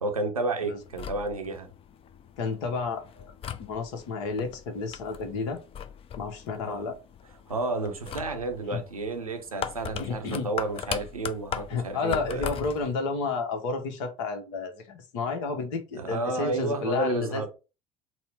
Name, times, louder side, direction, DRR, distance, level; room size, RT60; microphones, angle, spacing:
voice 1, 0.0-1.7 6.6-6.9 7.5-12.5 15.9-17.5, right 3 dB, 90° right, 0.7 m, -31 dB
sound 1, 0.8-12.9, left 8 dB, 30° left, 0.5 m, -39 dB
voice 2, 2.4-3.3 3.6-5.6 6.2-7.0 8.7-8.8 10.0-10.5 11.7-17.5, left 4 dB, 60° left, 1.0 m, -31 dB
4.2 x 2.1 x 4.3 m
figure-of-eight pair, 65°, 18 cm